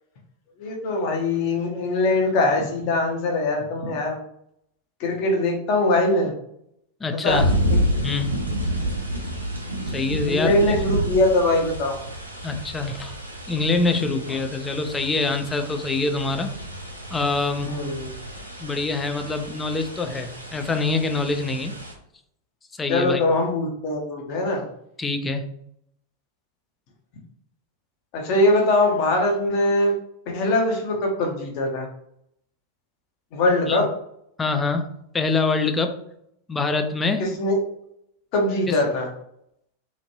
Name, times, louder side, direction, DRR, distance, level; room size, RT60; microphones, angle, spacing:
voice 1, 0.6-4.2 5.0-6.3 7.1-7.4 10.3-12.0 17.6-18.1 22.9-24.6 28.1-30.0 30.3-31.9 33.3-33.9 37.2-37.6 38.3-39.1, left 2 dB, 45° left, 1 dB, 0.8 m, -22 dB
voice 2, 7.0-7.5 8.0-8.4 9.9-10.5 12.4-13.1 13.5-16.5 17.1-17.7 18.6-21.8 22.8-23.2 25.0-25.4 33.7-33.8 34.4-36.0 36.5-37.3 38.7-38.8, left 3 dB, 15° left, 7 dB, 0.4 m, -25 dB
sound 1, 7.3-21.9, equal, 85° right, 0.6 m, -29 dB
2.9 x 2.5 x 2.7 m, 0.74 s
figure-of-eight pair, 90°, 0 cm